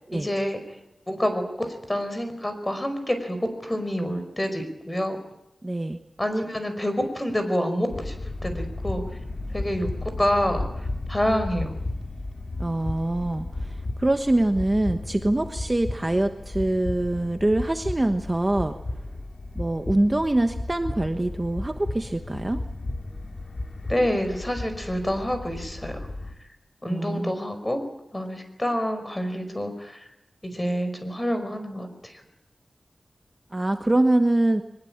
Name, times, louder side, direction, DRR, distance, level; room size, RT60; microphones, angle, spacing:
voice 1, 0.1-0.6 1.1-5.2 6.2-8.1 8.4-9.0 9.5-11.7 23.9-26.0 26.8-27.8 28.1-30.1 30.4-32.2, equal, 20° left, 8 dB, 5.1 m, -27 dB
voice 2, 5.6-6.0 12.6-18.7 19.5-22.6 26.8-27.3 33.5-34.6, right 1 dB, 25° right, 7 dB, 1.2 m, -24 dB
sound 1, 7.9-26.3, left 2 dB, 50° left, 3.2 m, -34 dB
23.0 x 20.5 x 8.8 m, 0.85 s
wide cardioid pair, 90°, 0 cm